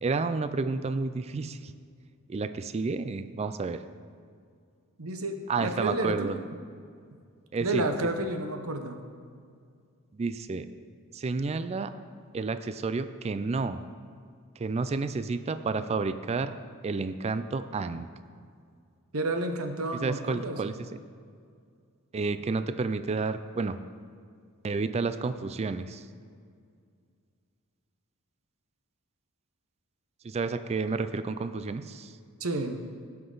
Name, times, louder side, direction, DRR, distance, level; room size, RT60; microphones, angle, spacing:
voice 1, 0.0-1.7 2.3-3.8 5.5-6.4 7.5-7.8 10.1-10.7 11.1-11.9 12.3-13.8 14.6-16.5 16.8-18.1 20.0-20.7 22.1-23.8 24.6-26.1 30.2-32.1, right 4 dB, 30° right, 11 dB, 0.3 m, -30 dB
voice 2, 5.0-6.3 7.6-9.0 19.1-20.6 32.4-32.9, right 2 dB, 75° right, 6 dB, 1.0 m, -31 dB
17.0 x 5.9 x 3.9 m, 2.2 s
head